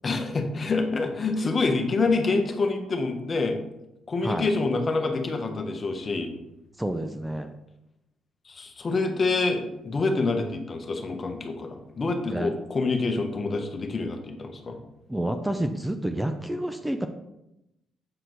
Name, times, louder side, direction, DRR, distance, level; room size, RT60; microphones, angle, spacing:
voice 1, 0.0-3.6 4.1-6.3 8.5-14.8, left 3 dB, 35° left, 4 dB, 1.1 m, -27 dB
voice 2, 6.8-7.5 12.3-12.5 15.1-17.1, right 1 dB, 10° right, 6 dB, 0.5 m, -29 dB
7.8 x 4.5 x 4.0 m, 0.90 s
cardioid pair, 90°, 0 cm